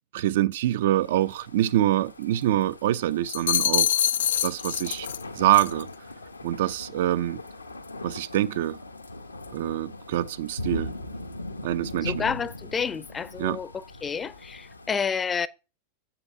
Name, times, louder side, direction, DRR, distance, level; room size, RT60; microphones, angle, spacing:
voice 1, 0.1-3.9 4.4-5.1 5.3-5.9 6.4-7.4 8.0-8.8 9.5-10.9 11.6-12.2 13.4-13.6, right 13 dB, 55° right, 0.5 m, -25 dB
sound 1, 0.9-14.9, left 1 dB, 80° left, 1.0 m, -40 dB
sound 2, 3.3-5.2 5.5-5.8, left 10 dB, 65° left, 0.4 m, -25 dB
voice 2, 12.0-15.5, left 6 dB, 20° left, 0.6 m, -30 dB
7.7 x 5.8 x 6.2 m
figure-of-eight pair, 90°, 0 cm